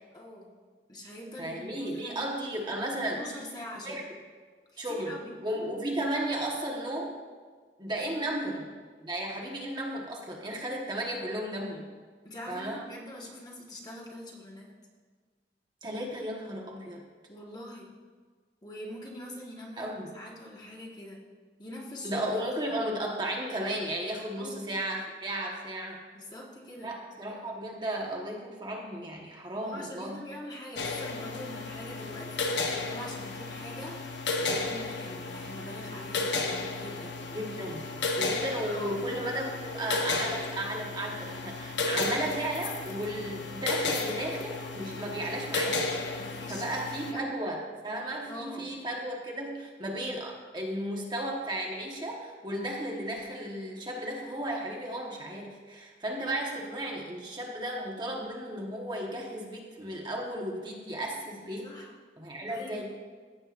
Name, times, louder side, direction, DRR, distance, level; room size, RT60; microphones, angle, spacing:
voice 1, 0.1-0.5 0.9-2.2 3.1-4.1 4.7-5.5 8.1-8.2 12.2-14.7 17.3-17.9 18.6-21.2 21.6-22.4 24.4-24.7 26.1-26.9 29.5-37.2 38.7-39.0 46.2-47.3 48.2-48.8 61.6-62.0 62.5-62.9, left 1 dB, 25° left, -2 dB, 1.4 m, -44 dB
voice 2, 1.4-3.2 3.8-4.0 4.8-5.2 5.4-7.2 7.8-8.6 9.0-11.9 12.5-12.8 15.8-17.0 19.8-20.1 22.0-26.0 26.8-30.2 37.3-37.9 38.2-45.8 46.5-61.7 62.2-62.9, right 1 dB, 25° right, -1 dB, 1.2 m, -34 dB
sound 1, 30.8-47.1, left 3 dB, 90° left, 0.9 m, -33 dB
15.0 x 7.6 x 2.5 m, 1.5 s
head